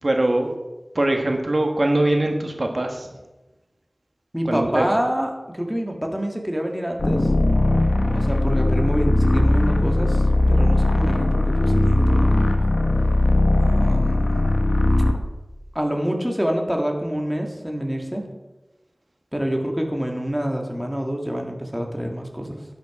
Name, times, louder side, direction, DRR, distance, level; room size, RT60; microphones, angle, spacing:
voice 1, 0.0-0.5 0.9-3.1 4.4-4.9, right 1 dB, 55° right, 3 dB, 1.4 m, -22 dB
voice 2, 4.3-7.3 8.1-12.5 13.6-14.6 15.7-18.3 19.3-22.7, equal, 5° right, 2 dB, 1.7 m, -27 dB
sound 1, 7.0-15.2, left 1 dB, 75° left, 1.1 m, -19 dB
11.0 x 8.2 x 4.8 m, 1.1 s
wide cardioid pair, 55°, 0 cm